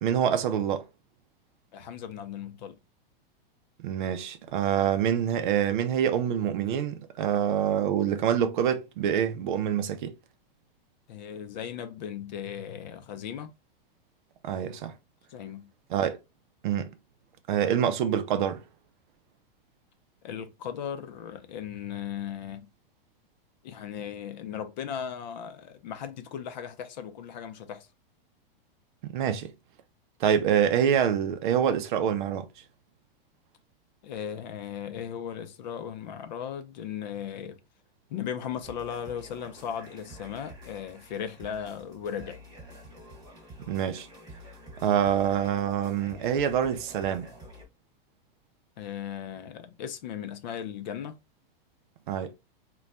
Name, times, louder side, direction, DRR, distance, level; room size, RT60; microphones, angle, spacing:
voice 1, 0.0-0.9 3.8-10.1 14.4-14.9 15.9-16.2 16.6-16.9 17.5-18.6 29.0-29.5 30.2-32.5 43.7-44.1 44.8-47.3 52.1-52.3, right 9 dB, 55° right, 0.5 m, -26 dB
voice 2, 1.7-2.8 11.1-13.5 15.3-15.7 20.2-22.7 23.6-27.9 34.0-37.6 38.1-42.4 48.8-51.2, left 8 dB, 50° left, 0.5 m, -37 dB
sound 1, 38.6-47.6, equal, 15° right, 0.9 m, -49 dB
3.8 x 2.2 x 2.2 m
supercardioid pair, 170°, 29 cm